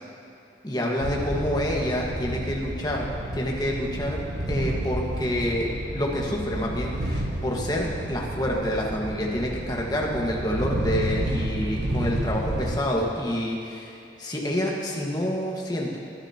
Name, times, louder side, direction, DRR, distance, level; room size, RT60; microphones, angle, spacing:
voice 1, 0.6-3.1 3.3-4.2 4.5-13.9 14.2-16.0, equal, 20° left, -2 dB, 1.6 m, -28 dB
sound 1, 1.0-12.8, right 1 dB, 80° right, 1.3 m, -30 dB
22.5 x 10.0 x 3.0 m, 2.8 s
head